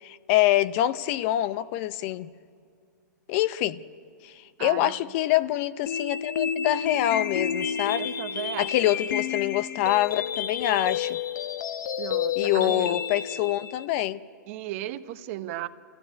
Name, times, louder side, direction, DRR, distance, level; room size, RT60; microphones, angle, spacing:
voice 1, 0.0-2.3 3.3-3.8 4.2-4.3 4.6-8.1 8.6-11.2 12.4-14.2, left 14 dB, 45° left, 15 dB, 0.6 m, -25 dB
voice 2, 4.6-5.0 8.0-8.9 12.0-13.0 14.5-15.7, right 14 dB, 45° right, 12 dB, 0.9 m, -35 dB
sound 1, 5.9-13.9, left 8 dB, 80° left, 1.1 m, -30 dB
28.5 x 14.0 x 10.0 m, 2.3 s
hypercardioid pair, 140°, 10 cm